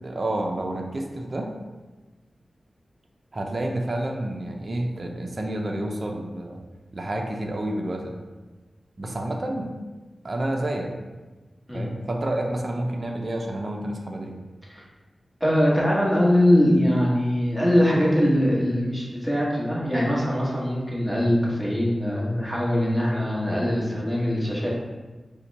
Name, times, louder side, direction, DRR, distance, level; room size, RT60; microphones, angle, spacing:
voice 1, 0.0-1.5 3.3-6.6 6.9-8.2 9.0-9.8 10.2-10.9 11.7-14.4, right 1 dB, 45° right, 2 dB, 0.5 m, -29 dB
voice 2, 15.4-24.7, equal, 5° left, -6 dB, 1.4 m, -22 dB
5.4 x 2.2 x 4.1 m, 1.2 s
wide cardioid pair, 70°, 0 cm